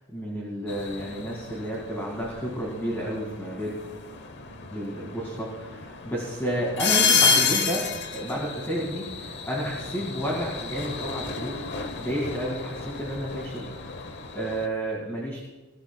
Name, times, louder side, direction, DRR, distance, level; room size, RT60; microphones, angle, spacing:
voice 1, 0.1-3.7 4.7-7.9 8.1-11.6 12.0-13.7 14.3-15.4, right 1 dB, 10° left, -3 dB, 2.3 m, -31 dB
sound 1, 0.7-14.7, left 5 dB, 50° left, 1.0 m, -30 dB
21.0 x 14.0 x 2.3 m, 1.1 s
head